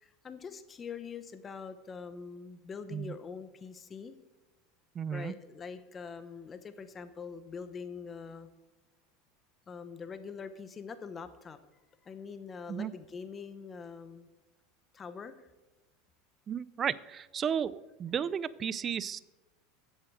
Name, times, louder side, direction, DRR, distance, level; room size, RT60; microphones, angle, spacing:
voice 1, 0.0-4.2 5.1-8.5 9.7-11.6 12.0-14.3 14.9-15.4, left 5 dB, 25° left, 11 dB, 0.8 m, -44 dB
voice 2, 5.0-5.3 12.7-12.9 16.5-19.2, right 8 dB, 30° right, 19 dB, 0.4 m, -33 dB
7.9 x 7.6 x 7.7 m, 1.1 s
supercardioid pair, 120°, 0 cm